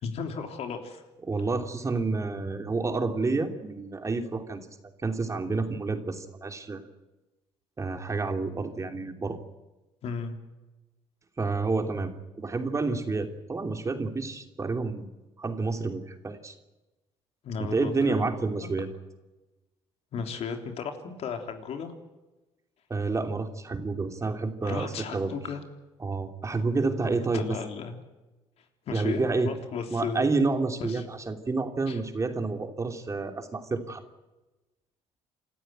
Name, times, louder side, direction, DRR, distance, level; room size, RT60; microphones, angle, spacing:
voice 1, 0.0-1.0 10.0-10.4 17.4-18.3 20.1-21.9 24.6-25.6 27.3-28.0 28.9-30.3 30.9-31.0 31.9-32.0, left 6 dB, 60° left, 5 dB, 3.4 m, -35 dB
voice 2, 1.3-4.7 5.0-6.8 7.8-9.4 11.4-15.1 15.4-16.5 17.6-18.9 22.9-25.3 26.0-27.4 28.9-29.5 29.9-34.0, right 3 dB, 25° right, 6 dB, 2.9 m, -29 dB
27.0 x 14.0 x 9.2 m, 1.1 s
supercardioid pair, 85°, 12 cm